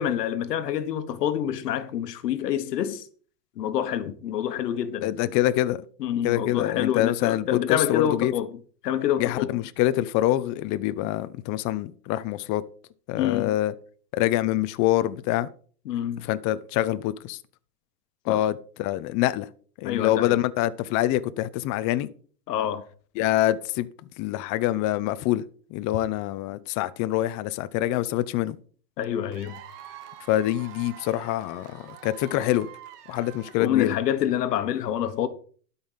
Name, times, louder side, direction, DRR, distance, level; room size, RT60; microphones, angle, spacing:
voice 1, 0.0-3.0 3.6-5.1 6.0-8.5 8.8-9.5 13.2-13.5 15.8-16.3 18.3-18.4 19.8-20.4 22.5-22.8 29.0-29.6 33.6-35.3, left 10 dB, 85° left, 1.4 m, -27 dB
voice 2, 5.0-5.8 6.2-8.3 9.2-12.6 13.1-13.7 14.1-15.5 16.2-17.4 18.2-19.5 19.8-22.1 23.2-23.9 24.2-25.4 25.7-28.6 30.3-32.7 33.1-33.9, left 14 dB, 40° left, 0.7 m, -25 dB
Cheering / Applause / Crowd, 29.3-34.0, right 9 dB, 75° right, 2.1 m, -46 dB
12.0 x 5.7 x 5.7 m
supercardioid pair, 125°, 47 cm